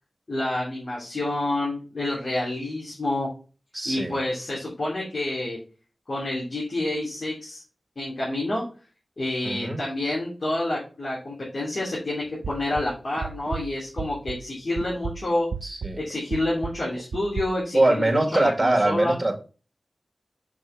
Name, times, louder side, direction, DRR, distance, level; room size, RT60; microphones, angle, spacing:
voice 1, 0.3-3.3 3.8-5.6 6.1-7.6 7.9-8.6 9.2-15.5 16.0-19.2, left 1 dB, 60° left, -7 dB, 3.3 m, -28 dB
voice 2, 3.7-4.2 9.4-9.8 15.6-16.0 17.7-19.4, right 2 dB, 20° right, 3 dB, 1.8 m, -22 dB
sound 1, 12.4-14.5 14.8-17.4, right 5 dB, 90° right, 0.4 m, -34 dB
6.6 x 5.5 x 3.4 m, 0.35 s
cardioid pair, 50°, 0 cm